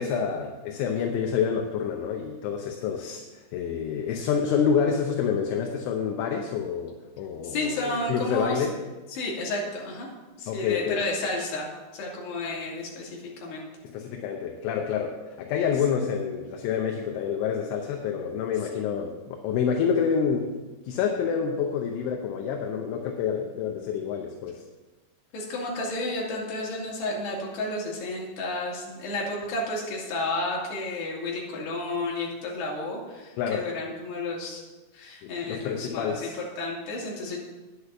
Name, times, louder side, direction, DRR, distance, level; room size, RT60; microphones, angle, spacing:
voice 1, 0.0-8.8 10.5-11.0 13.8-20.5 20.8-24.6 33.4-33.7 35.2-36.4, left 7 dB, 80° left, 2 dB, 3.2 m, -28 dB
voice 2, 7.4-8.7 9.1-10.1 10.4-13.7 25.3-34.6 34.9-36.3 36.6-37.4, left 2 dB, 60° left, -3 dB, 4.2 m, -32 dB
10.0 x 8.2 x 5.8 m, 1.2 s
omnidirectional pair, 5.6 m